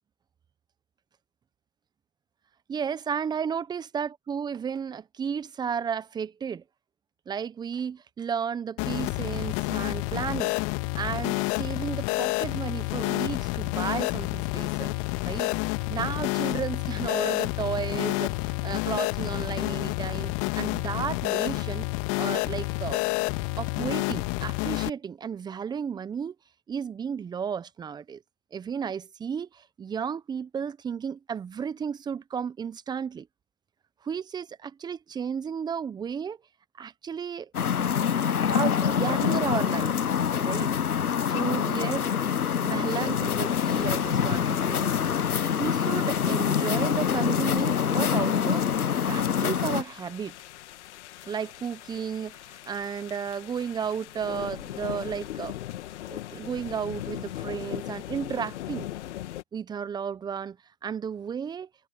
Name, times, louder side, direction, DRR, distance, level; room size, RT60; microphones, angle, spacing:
voice 1, 2.7-6.6 7.3-10.5 11.0-14.9 15.2-15.5 15.9-21.9 22.2-23.0 23.6-26.3 26.7-28.2 28.5-33.3 34.0-36.4 36.8-37.5 38.2-40.0 40.4-40.7 41.2-42.1 42.6-44.9 45.6-48.7 49.1-50.4 51.3-55.6 56.1-58.9 59.5-60.6 60.8-61.7, right 7 dB, 10° right, 1.0 m, -33 dB
sound 1, 8.8-24.9, left 28 dB, 35° left, 2.0 m, -29 dB
sound 2, 37.5-49.8, left 8 dB, 85° left, 1.1 m, -25 dB
sound 3, 43.2-59.4, left 13 dB, 50° left, 2.8 m, -41 dB
hypercardioid pair, 125°, 43 cm